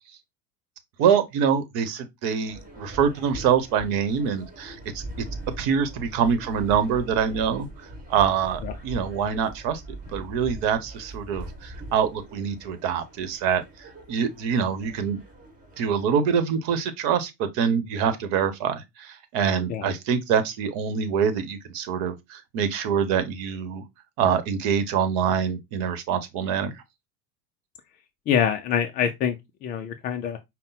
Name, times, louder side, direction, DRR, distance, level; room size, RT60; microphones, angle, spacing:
voice 1, 1.0-5.0 5.6-7.7 8.1-9.8 10.1-13.6 14.1-15.2 15.8-23.8 24.2-26.8, right 7 dB, 50° right, 1.0 m, -25 dB
sound 1, 2.5-16.0, right 1 dB, 15° right, 1.5 m, -41 dB
voice 2, 28.3-29.3 29.6-30.4, left 8 dB, 20° left, 0.3 m, -25 dB
5.3 x 2.2 x 3.9 m
hypercardioid pair, 85°, 48 cm